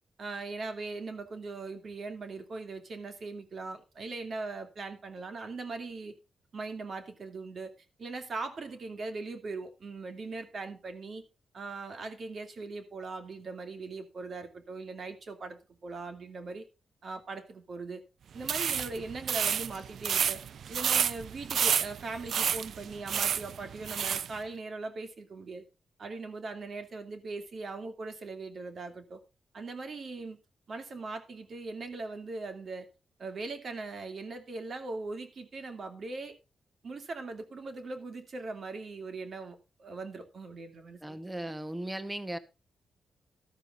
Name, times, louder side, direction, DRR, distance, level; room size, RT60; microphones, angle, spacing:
voice 1, 0.2-6.1 6.5-7.7 8.0-11.2 11.5-16.6 17.0-18.0 18.3-20.4 20.7-25.6 26.0-29.2 29.5-30.4 30.7-32.9 33.2-36.3 36.8-41.2, right 3 dB, 40° right, 2.5 m, -40 dB
sound 1, 18.4-24.3, right 8 dB, 60° right, 0.5 m, -30 dB
voice 2, 41.0-42.4, right 1 dB, 10° right, 1.0 m, -37 dB
13.5 x 13.0 x 2.5 m
wide cardioid pair, 170°, 0 cm